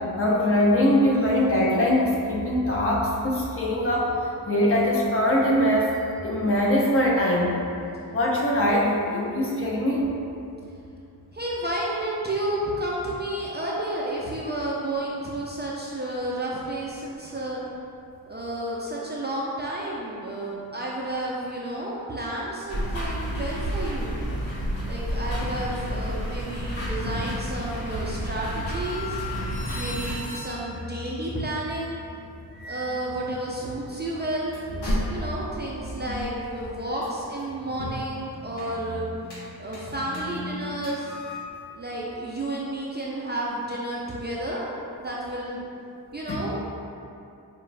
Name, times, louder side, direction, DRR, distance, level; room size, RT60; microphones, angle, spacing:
voice 1, 0.2-4.1 4.5-5.9 6.2-7.5 8.1-10.0 46.3-46.4, left 1 dB, 35° left, -3 dB, 0.5 m, -22 dB
voice 2, 11.3-17.6 18.3-24.2 24.9-29.2 29.7-32.0 32.6-34.6 35.1-39.1 39.6-41.1 41.7-44.6 45.0-45.7 46.1-46.8, right 1 dB, 25° right, -5 dB, 0.3 m, -31 dB
sound 1, 22.7-30.2, equal, 85° left, 1.3 m, -30 dB
sound 2, 28.6-41.4, left 1 dB, 70° left, 1.0 m, -36 dB
4.5 x 2.5 x 3.2 m, 2.6 s
wide cardioid pair, 135°, 40 cm